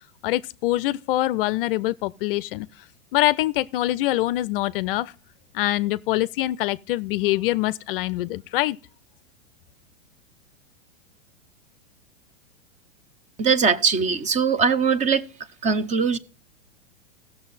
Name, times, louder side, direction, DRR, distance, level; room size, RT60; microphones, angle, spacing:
voice 1, 0.2-2.7 3.1-5.1 5.5-8.8, left 16 dB, 45° left, 0.5 m, -24 dB
voice 2, 13.4-15.2 15.6-16.2, right 5 dB, 20° right, 0.6 m, -21 dB
16.0 x 6.8 x 4.0 m
hypercardioid pair, 115°, 39 cm